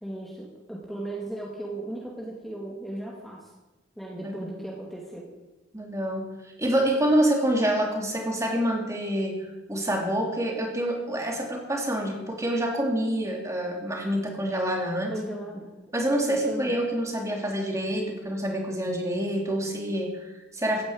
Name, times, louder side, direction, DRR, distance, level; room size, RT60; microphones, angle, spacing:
voice 1, 0.0-3.5 4.0-5.3 15.1-15.7 16.3-16.7, right 1 dB, ahead, -3 dB, 2.2 m, -36 dB
voice 2, 5.7-6.3 6.6-15.1 15.9-20.8, right 1 dB, 15° right, 2 dB, 2.9 m, -27 dB
16.0 x 10.5 x 8.8 m, 1.1 s
head